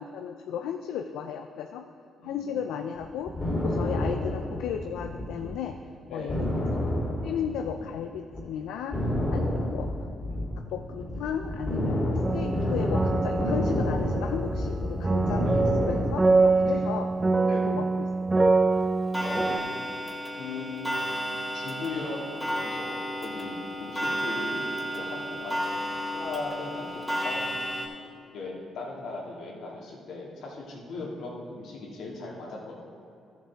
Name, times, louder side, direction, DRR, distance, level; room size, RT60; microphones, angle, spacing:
voice 1, 0.0-1.8 2.2-3.4 3.6-5.8 6.1-6.7 7.2-9.0 9.3-9.9 10.7-17.1 17.6-18.1, left 8 dB, 90° left, 5 dB, 0.4 m, -34 dB
sound 1, 3.0-5.5 5.8-5.9 6.3-8.0 8.3-8.5 8.9-16.2, left 1 dB, 25° left, 2.1 m, -29 dB
voice 2, 6.1-6.5 7.8-7.9 9.0-9.3 10.3-10.4 14.6-15.2 15.4-15.7 16.6-16.9 17.4-17.7 19.2-19.6 20.4-21.2 21.5-22.2 22.6-27.0 27.2-27.6 28.3-32.7, left 3 dB, 75° left, -3 dB, 2.2 m, -39 dB
sound 2, 12.2-19.6, right 3 dB, 20° right, 0.3 m, -25 dB
Clock, 19.1-27.9, equal, 5° left, 1.8 m, -32 dB
13.0 x 7.2 x 3.5 m, 2.6 s
cardioid pair, 90°, 0 cm